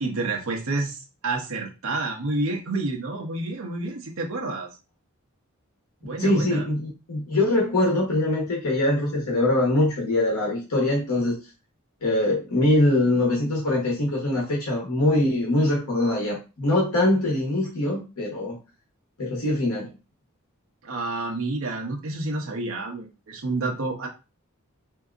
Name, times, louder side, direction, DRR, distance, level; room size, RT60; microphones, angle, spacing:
voice 1, 0.0-4.8 6.0-6.7 20.8-24.1, right 2 dB, 65° right, 0 dB, 0.7 m, -29 dB
voice 2, 6.2-11.4 12.0-18.5 19.2-19.9, left 1 dB, 80° left, -4 dB, 1.1 m, -23 dB
3.6 x 2.7 x 2.4 m, 0.29 s
head